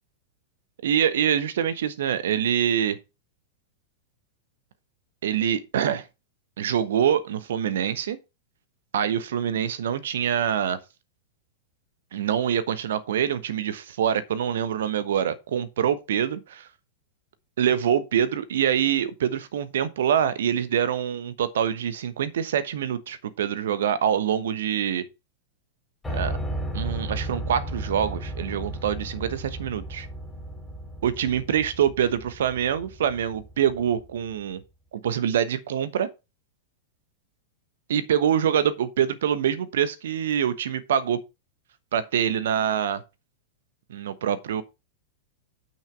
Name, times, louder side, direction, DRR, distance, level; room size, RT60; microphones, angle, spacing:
voice 1, 0.8-3.0 5.2-6.0 6.6-8.2 8.9-10.8 12.1-16.7 17.6-25.0 26.1-26.4 26.7-30.1 31.0-34.6 34.9-36.1 37.9-41.2 41.9-43.0 43.9-44.6, right 9 dB, 60° right, 1.1 m, -25 dB
Piano, 26.0-34.0, right 1 dB, 10° left, 2.9 m, -34 dB
8.6 x 6.3 x 4.6 m
figure-of-eight pair, 95°, 0 cm